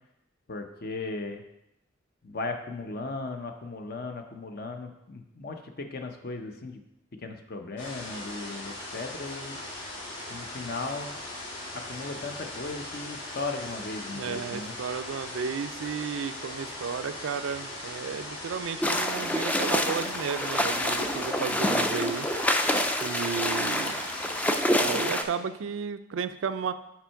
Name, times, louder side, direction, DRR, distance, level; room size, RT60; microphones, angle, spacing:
voice 1, 0.5-1.4 2.2-6.8 7.2-9.6 10.3-11.1 11.9-14.8, left 3 dB, 50° left, 5 dB, 0.7 m, -37 dB
sound 1, 7.8-24.6, left 1 dB, 65° left, 1.7 m, -39 dB
voice 2, 14.1-22.3 23.0-24.0 24.8-26.7, right 6 dB, 80° right, 11 dB, 0.4 m, -33 dB
sound 2, 18.8-25.2, left 1 dB, 10° left, 0.4 m, -27 dB
5.8 x 4.4 x 5.6 m, 0.87 s
head